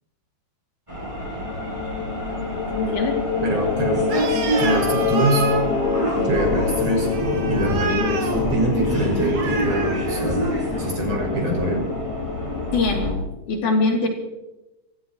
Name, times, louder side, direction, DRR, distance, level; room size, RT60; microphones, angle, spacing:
sound 1, 0.9-13.1, equal, 5° right, 6.2 m, -28 dB
sound 2, 1.0-12.9, left 7 dB, 85° left, 3.8 m, -27 dB
voice 1, 2.8-3.2 12.7-13.2 13.5-14.1, left 3 dB, 45° left, 0 dB, 4.0 m, -22 dB
voice 2, 3.4-4.1 4.6-5.6 6.2-10.4 10.8-11.9, right 2 dB, 30° right, 0 dB, 7.3 m, -24 dB
Animal, 4.0-10.8, right 4 dB, 70° right, 1.5 m, -30 dB
27.0 x 16.0 x 3.1 m, 0.97 s
omnidirectional pair, 5.4 m